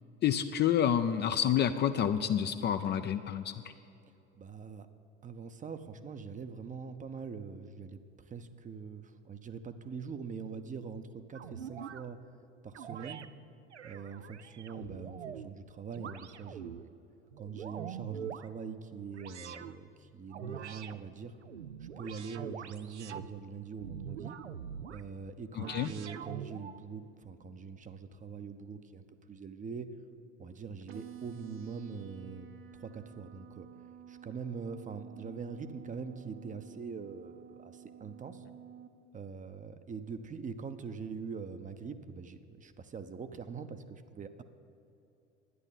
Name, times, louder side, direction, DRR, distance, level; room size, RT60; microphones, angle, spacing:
voice 1, 0.2-3.5 25.6-25.9, left 9 dB, 30° left, 9 dB, 0.5 m, -28 dB
voice 2, 4.3-4.9 5.2-8.0 8.3-11.0 11.3-12.2 12.6-13.2 13.8-16.9 17.4-21.4 21.8-24.4 24.9-29.9 30.4-32.5 32.7-33.7 34.1-38.4 39.1-44.4, right 5 dB, 25° right, 10 dB, 0.7 m, -43 dB
sound 1, 11.3-12.0 12.7-13.3 13.7-15.5 15.9-16.8 17.3-18.5 19.1-19.7 20.3-21.0 21.4-23.3 23.8-25.0 25.6-26.8, right 8 dB, 90° right, 0.5 m, -44 dB
sound 2, 30.9-38.9, right 8 dB, 60° right, 1.0 m, -51 dB
11.0 x 9.8 x 7.2 m, 2.8 s
figure-of-eight pair, 70°, 34 cm